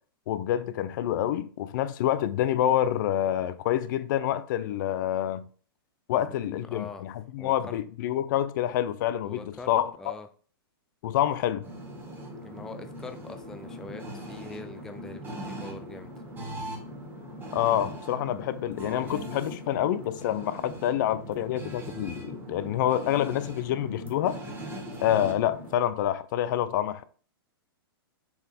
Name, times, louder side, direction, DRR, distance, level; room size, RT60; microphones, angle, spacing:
voice 1, 0.3-5.4 6.1-10.1 11.0-11.7 17.5-24.4 25.0-27.0, left 11 dB, 55° left, 0.5 m, -27 dB
voice 2, 6.1-7.0 7.4-7.8 9.3-9.7 10.0-10.3 12.4-16.1, left 3 dB, 5° left, 0.3 m, -43 dB
sound 1, 11.6-25.8, equal, 15° right, 1.8 m, -40 dB
7.0 x 4.1 x 3.5 m
hypercardioid pair, 135°, 13 cm